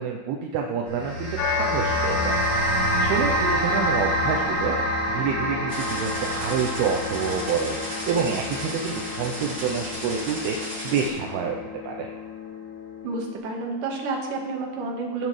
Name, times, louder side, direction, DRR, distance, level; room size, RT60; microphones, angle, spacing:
voice 1, 0.0-2.4 2.9-12.1, right 6 dB, 80° right, 2 dB, 2.5 m, -28 dB
sound 1, 0.9-11.4, right 1 dB, 45° right, 2.8 m, -28 dB
sound 2, 1.4-13.4, left 7 dB, 75° left, 2.7 m, -34 dB
sound 3, 5.7-11.1, equal, 30° right, 4.6 m, -35 dB
voice 2, 13.0-15.3, right 3 dB, 60° right, 0 dB, 2.7 m, -30 dB
16.5 x 7.4 x 3.2 m, 1.2 s
omnidirectional pair, 4.9 m